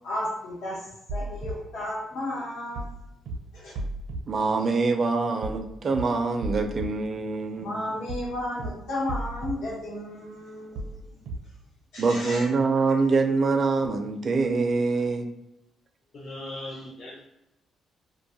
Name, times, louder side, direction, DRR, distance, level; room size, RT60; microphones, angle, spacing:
voice 1, 0.0-2.9 3.5-3.7 7.6-11.1 11.9-12.5, left 1 dB, 85° left, -7 dB, 1.1 m, -33 dB
sound 1, 1.1-1.5 2.8-3.0 3.3-3.4 3.8-4.2 5.4-5.6 5.9-6.0 6.4-6.9 8.1-8.3 8.6-8.7 9.1-9.5 10.8-11.0 11.3-11.4, right 2 dB, 90° right, 0.6 m, -33 dB
voice 2, 4.3-7.9 12.0-15.3, right 4 dB, 45° right, 6 dB, 0.3 m, -25 dB
voice 3, 16.1-17.2, left 1 dB, 50° left, -4 dB, 0.5 m, -38 dB
2.5 x 2.2 x 2.7 m, 0.90 s
cardioid pair, 90°, 0 cm